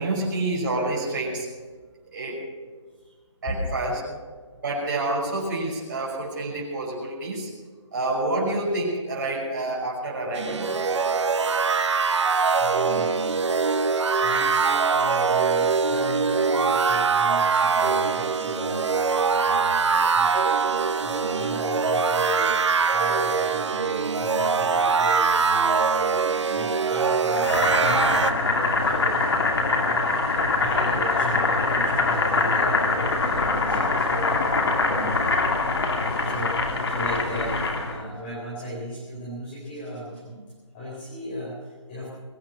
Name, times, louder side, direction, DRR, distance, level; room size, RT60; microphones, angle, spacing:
voice 1, 0.0-1.5 2.1-2.4 3.4-4.0 4.6-7.5 7.9-10.7, right 2 dB, 40° right, -5 dB, 5.8 m, -28 dB
sound 1, 10.3-28.3, right 5 dB, 65° right, 0.9 m, -23 dB
voice 2, 12.5-13.1 14.2-30.1 30.6-35.2 36.1-40.5 40.7-42.1, equal, 20° left, -7 dB, 4.2 m, -36 dB
Boiling, 27.4-38.0, left 3 dB, 55° left, 2.6 m, -23 dB
21.5 x 8.8 x 7.1 m, 1.5 s
hypercardioid pair, 175°, 16 cm